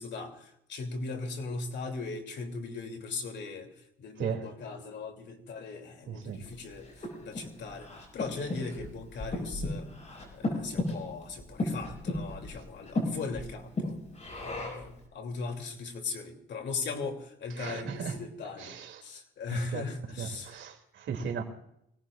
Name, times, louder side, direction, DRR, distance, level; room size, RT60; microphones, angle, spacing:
voice 1, 0.0-9.9 10.3-14.0 14.4-20.6, left 4 dB, 65° left, 2.8 m, -39 dB
voice 2, 6.1-6.5 13.9-14.0 17.6-18.2 18.6-19.0 19.5-19.8 20.2-21.4, right 7 dB, 70° right, 2.7 m, -36 dB
Breathing, 6.4-15.0, left 2 dB, 35° left, 6.3 m, -36 dB
25.0 x 18.0 x 2.5 m
cardioid pair, 90°, 20 cm